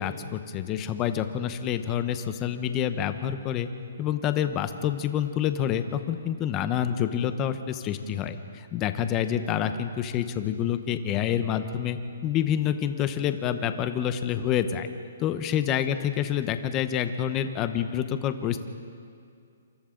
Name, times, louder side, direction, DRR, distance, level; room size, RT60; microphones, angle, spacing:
voice 1, 0.0-3.7 4.0-8.4 8.7-14.9 15.2-18.7, left 9 dB, 20° left, 10 dB, 0.9 m, -27 dB
27.5 x 27.5 x 3.9 m, 2.4 s
hypercardioid pair, 170°, 0 cm